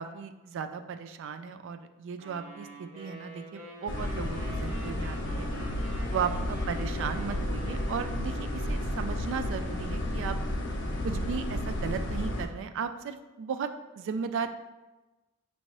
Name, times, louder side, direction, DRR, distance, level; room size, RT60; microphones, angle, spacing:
voice 1, 0.0-5.5 6.1-10.4 11.0-13.7 14.0-14.5, right 6 dB, 60° right, 9 dB, 0.3 m, -35 dB
sound 1, 2.2-9.4, right 1 dB, 40° right, 1.1 m, -46 dB
sound 2, 3.9-12.4, left 1 dB, 60° left, 0.6 m, -32 dB
5.4 x 2.8 x 3.0 m, 1.1 s
head